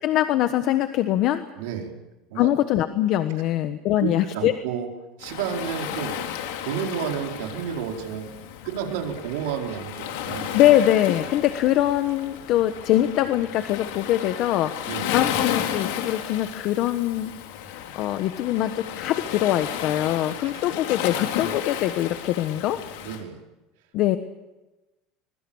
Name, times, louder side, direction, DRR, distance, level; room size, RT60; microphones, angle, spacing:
voice 1, 0.0-1.4 2.3-4.5 10.5-14.7 15.1-22.8 23.9-24.2, left 13 dB, 50° left, 9 dB, 1.2 m, -23 dB
voice 2, 1.6-1.9 2.3-2.5 4.0-4.9 5.2-8.3 8.6-10.6 14.9-15.1 20.4-20.7 23.0-23.4, right 8 dB, 85° right, 2 dB, 4.6 m, -31 dB
Waves surf, 5.2-23.2, left 10 dB, 85° left, 3.5 m, -33 dB
24.5 x 23.0 x 7.2 m, 1.1 s
cardioid pair, 160°, 0 cm